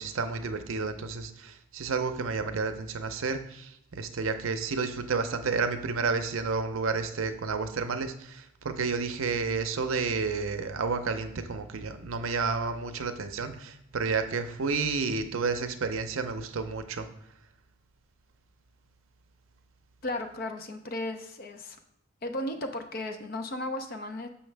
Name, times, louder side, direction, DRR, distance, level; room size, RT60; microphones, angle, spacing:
voice 1, 0.0-17.1, right 4 dB, 75° right, 7 dB, 0.6 m, -31 dB
voice 2, 20.0-21.8 22.2-24.3, left 1 dB, 45° left, 6 dB, 0.5 m, -35 dB
6.4 x 5.7 x 3.3 m, 0.80 s
head